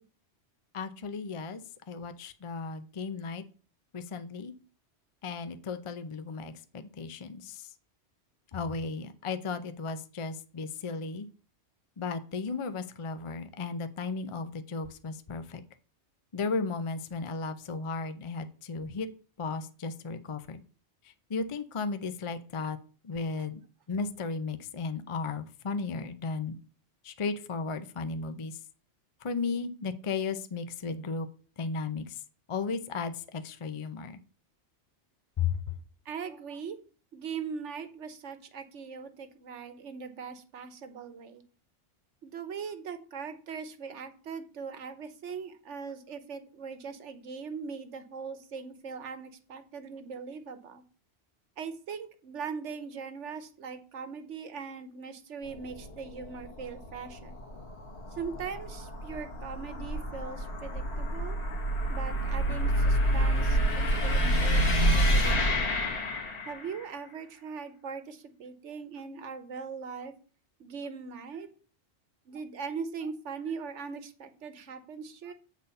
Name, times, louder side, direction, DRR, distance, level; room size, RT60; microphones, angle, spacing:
voice 1, 0.7-1.6 1.9-3.4 3.9-4.5 5.2-7.7 8.5-11.3 12.0-15.6 16.3-19.1 19.4-20.6 21.3-22.8 23.0-23.6 23.9-26.6 27.0-28.6 29.2-31.3 31.6-32.2 32.5-34.2 35.4-35.6, left 4 dB, 35° left, 9 dB, 0.5 m, -35 dB
voice 2, 36.0-36.8 37.1-41.4 42.2-50.8 51.6-57.4 58.1-61.4 61.9-65.7 66.5-70.1 70.6-71.5 72.3-75.3, right 5 dB, 90° right, 10 dB, 1.3 m, -40 dB
sound 1, 55.5-66.8, equal, 65° left, 1.9 m, -28 dB
8.1 x 4.2 x 5.4 m, 0.39 s
omnidirectional pair, 1.2 m